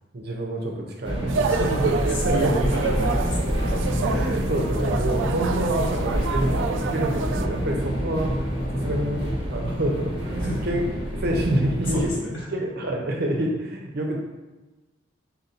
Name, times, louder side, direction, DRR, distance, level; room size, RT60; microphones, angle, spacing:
voice 1, 0.1-1.7 2.2-2.7 4.0-8.3 8.7-10.9 11.1-12.1 12.5-14.2, right 1 dB, 55° right, 1 dB, 0.7 m, -27 dB
sound 1, 1.0-12.1, equal, 30° right, 1.1 m, -27 dB
sound 2, 1.3-7.5, right 5 dB, 75° right, 0.3 m, -28 dB
voice 2, 1.5-3.6 10.4-10.6 11.8-12.5, equal, 90° left, -4 dB, 1.4 m, -29 dB
sound 3, 3.5-9.4, left 1 dB, 70° left, 0.6 m, -34 dB
4.1 x 2.7 x 4.2 m, 1.1 s
head